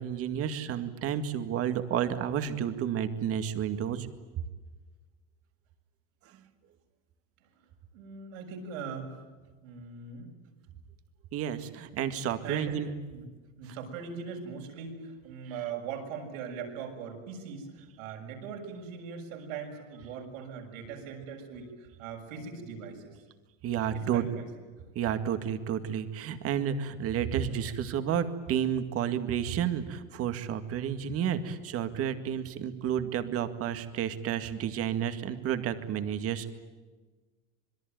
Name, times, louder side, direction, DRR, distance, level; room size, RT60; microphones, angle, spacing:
voice 1, 0.0-4.1 11.3-12.9 13.7-13.8 23.6-24.2 25.0-36.5, right 9 dB, 35° right, 9 dB, 2.1 m, -31 dB
voice 2, 7.9-9.1 9.6-10.3 12.4-12.8 13.1-13.3 13.6-23.2 23.9-24.5, right 6 dB, 80° right, 2 dB, 7.2 m, -40 dB
26.5 x 22.0 x 9.4 m, 1.3 s
supercardioid pair, 150°, 40 cm